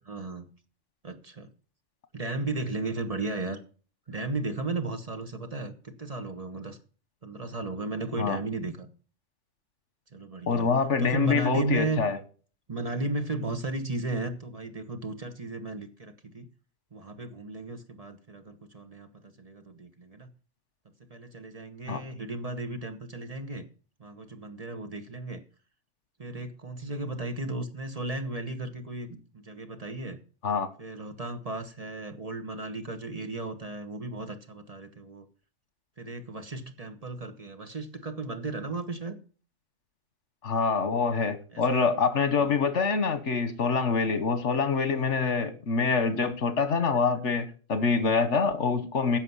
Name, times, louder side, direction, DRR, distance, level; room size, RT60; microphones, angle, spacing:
voice 1, 0.0-0.5 1.0-1.5 2.1-3.6 4.1-6.8 7.2-8.9 10.1-10.7 11.0-12.0 12.7-16.5 16.9-20.3 21.1-23.6 24.0-25.4 26.2-30.2 30.8-35.2 36.0-39.2 41.5-41.9 42.4-42.5 44.9-45.2, right 2 dB, 30° right, 1.2 m, -35 dB
voice 2, 10.5-12.2 21.9-22.0 30.4-30.7 40.4-49.2, left 5 dB, 75° left, 1.6 m, -25 dB
11.0 x 7.0 x 5.6 m
omnidirectional pair, 1.2 m